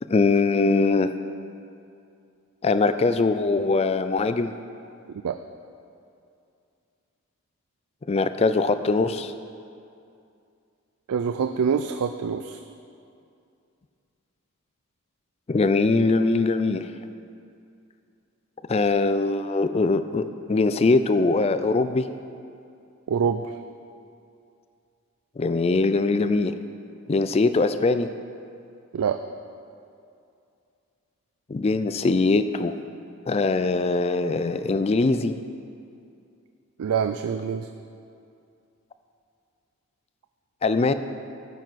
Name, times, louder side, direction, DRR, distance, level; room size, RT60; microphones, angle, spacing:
voice 1, 0.1-1.1 2.6-4.5 8.1-9.3 15.5-16.9 18.7-22.1 25.4-26.5 27.1-28.1 31.5-32.7 33.3-35.3 40.6-40.9, left 3 dB, 25° left, 11 dB, 0.3 m, -22 dB
voice 2, 11.1-12.6 23.1-23.6 28.9-29.2 36.8-37.7, right 6 dB, 85° right, 8 dB, 0.4 m, -25 dB
12.0 x 9.1 x 4.1 m, 2.5 s
head